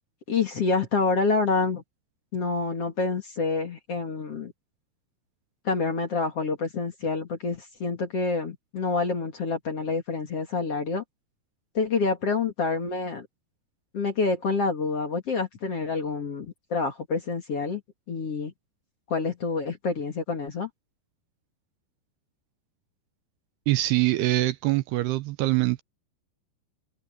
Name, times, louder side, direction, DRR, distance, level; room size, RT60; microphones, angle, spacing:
voice 1, 0.3-1.8 2.3-4.5 5.6-11.0 11.7-13.3 13.9-17.8 18.1-18.5 19.1-20.7, left 4 dB, 45° left, 2.5 m, -27 dB
voice 2, 23.7-25.8, right 17 dB, 80° right, 2.6 m, -24 dB
omnidirectional pair, 5.1 m